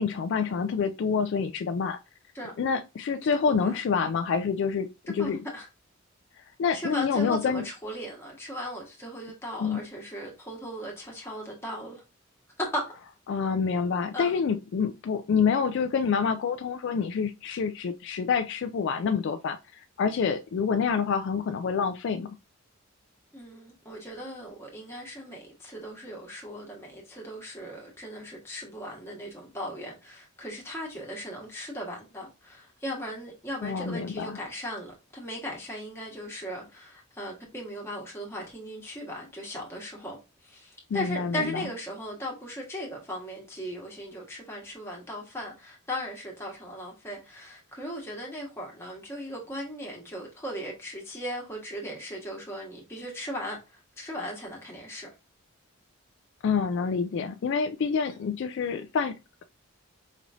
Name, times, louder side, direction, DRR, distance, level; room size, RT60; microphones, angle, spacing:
voice 1, 0.0-2.0 2.6-5.4 6.6-7.6 9.6-9.8 13.3-22.3 33.6-34.4 40.9-41.6 56.4-59.1, left 6 dB, 60° left, 0.3 m, -27 dB
voice 2, 3.3-3.8 5.1-5.7 6.7-12.0 12.6-12.8 14.1-14.4 23.3-40.2 40.4-55.1 58.1-58.2, equal, 10° left, 1.4 m, -37 dB
5.1 x 3.0 x 2.5 m
head